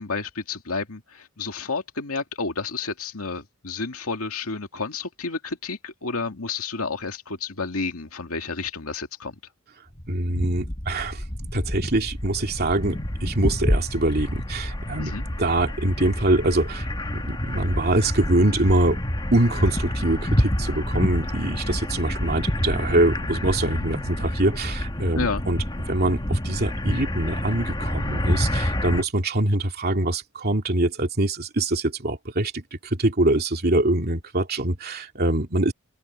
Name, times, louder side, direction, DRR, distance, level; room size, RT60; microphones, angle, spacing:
voice 1, 0.0-9.4 15.0-15.2 25.1-25.4, left 4 dB, 80° left, 2.3 m, -30 dB
sound 1, 9.9-29.0, left 1 dB, 20° left, 1.5 m, -28 dB
voice 2, 10.1-11.2 11.5-15.1 15.4-19.0 19.3-25.6 25.9-35.7, right 1 dB, 45° right, 2.6 m, -24 dB
open air
head